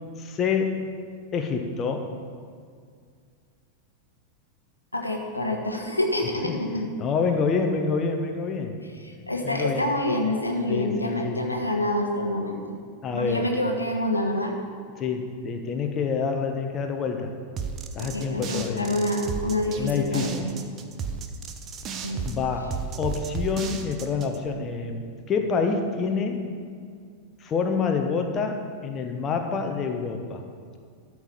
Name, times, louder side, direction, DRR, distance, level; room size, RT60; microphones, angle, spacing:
voice 1, 0.2-0.8 1.3-2.2 6.4-6.6 7.0-8.8 9.4-9.9 10.7-11.7 13.0-13.5 15.0-17.3 17.9-18.9 19.8-20.5 22.2-26.4 27.4-30.4, left 5 dB, 25° left, 4 dB, 1.0 m, -27 dB
voice 2, 4.9-6.9 9.0-12.8 13.1-14.5 18.0-20.5 22.0-22.2, left 1 dB, 85° left, 2 dB, 1.2 m, -27 dB
sound 1, 17.6-24.4, right 5 dB, 30° right, 0.9 m, -33 dB
13.0 x 4.8 x 7.5 m, 2.1 s
figure-of-eight pair, 90°, 0 cm